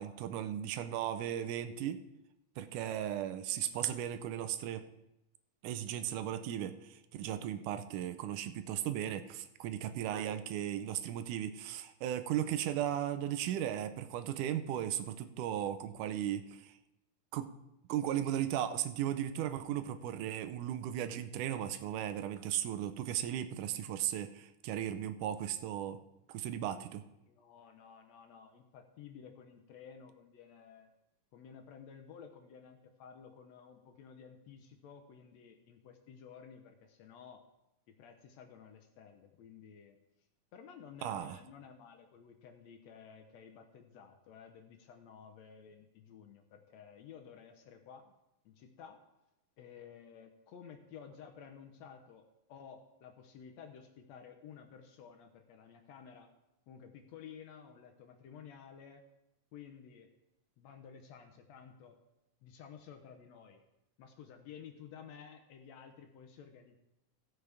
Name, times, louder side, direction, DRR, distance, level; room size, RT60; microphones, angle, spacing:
voice 1, 0.0-2.0 2.6-4.9 5.6-16.8 17.3-17.5 17.9-26.0 26.3-27.0 41.0-41.4, right 11 dB, 85° right, 10 dB, 2.2 m, -36 dB
voice 2, 27.3-30.9 31.3-37.4 37.9-40.0 40.5-48.1 48.5-49.0 49.6-56.3 56.7-59.1 59.5-60.1 60.6-62.0 62.4-63.6 64.0-66.8, left 7 dB, 70° left, 5 dB, 1.9 m, -53 dB
15.5 x 8.1 x 3.4 m, 0.89 s
omnidirectional pair, 3.6 m